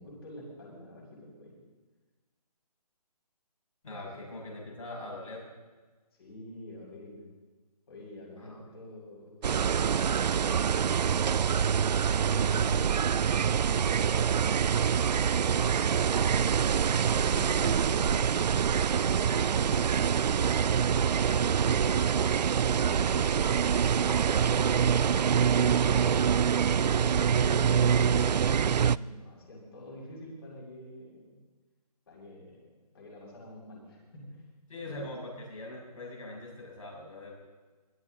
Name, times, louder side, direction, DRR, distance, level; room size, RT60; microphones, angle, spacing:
voice 1, 0.0-1.6 3.8-4.3 6.2-7.3 7.9-11.1 11.9-16.6 17.1-18.4 19.1-22.0 22.6-23.3 24.0-26.2 26.6-31.4 32.1-34.4 34.8-34.9, left 1 dB, 35° left, -3 dB, 7.0 m, -47 dB
voice 2, 3.8-5.5 8.4-8.6 34.7-37.4, left 2 dB, 55° left, -2 dB, 7.0 m, -42 dB
sound 1, 9.4-29.0, right 7 dB, 90° right, 0.4 m, -25 dB
24.0 x 13.5 x 3.9 m, 1.3 s
hypercardioid pair, 170°, 21 cm